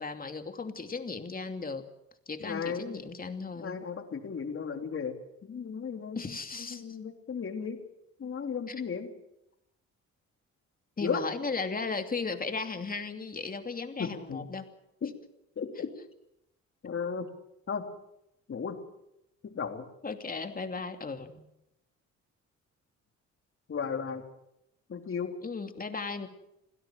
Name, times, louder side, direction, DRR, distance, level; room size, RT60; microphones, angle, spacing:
voice 1, 0.0-1.9 2.3-3.8 6.2-6.8 8.7-8.8 11.0-14.7 20.0-21.4 25.4-26.3, left 4 dB, 30° left, 6 dB, 2.7 m, -36 dB
voice 2, 2.4-3.0 3.5-6.4 6.7-7.8 8.2-9.1 11.0-11.2 14.0-14.4 15.0-15.1 15.6-15.9 16.8-17.3 17.7-17.9 18.5-18.8 19.4-19.9 23.7-24.2 24.9-25.3, left 6 dB, 45° left, 5 dB, 3.5 m, -35 dB
27.0 x 16.5 x 7.7 m, 0.85 s
cardioid pair, 90°, 30 cm